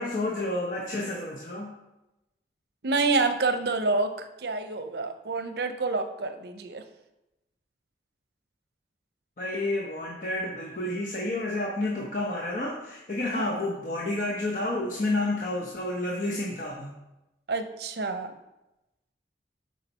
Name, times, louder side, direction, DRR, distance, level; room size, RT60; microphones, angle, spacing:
voice 1, 0.0-1.7 9.4-16.9, left 2 dB, 50° left, -3 dB, 0.9 m, -30 dB
voice 2, 2.8-6.8 13.3-13.6 17.5-18.3, right 3 dB, 65° right, 8 dB, 0.6 m, -28 dB
7.0 x 4.8 x 5.5 m, 0.96 s
head